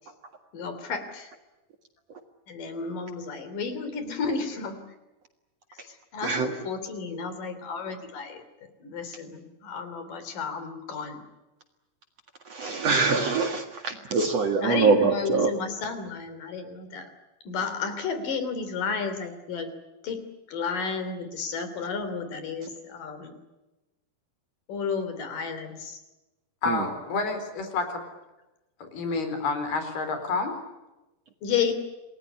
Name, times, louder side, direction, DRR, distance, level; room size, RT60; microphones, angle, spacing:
voice 1, 0.5-1.3 2.5-4.8 5.8-8.4 8.8-11.2 14.6-17.1 17.5-19.8 20.0-23.4 24.7-26.0 31.4-31.7, left 5 dB, 60° left, 10 dB, 4.6 m, -32 dB
voice 2, 6.2-6.5 12.5-15.5 26.7-26.8, right 4 dB, 50° right, 6 dB, 2.5 m, -24 dB
voice 3, 26.6-28.0 28.8-30.5, left 4 dB, 75° left, 7 dB, 6.1 m, -29 dB
28.0 x 20.0 x 10.0 m, 1.0 s
omnidirectional pair, 4.5 m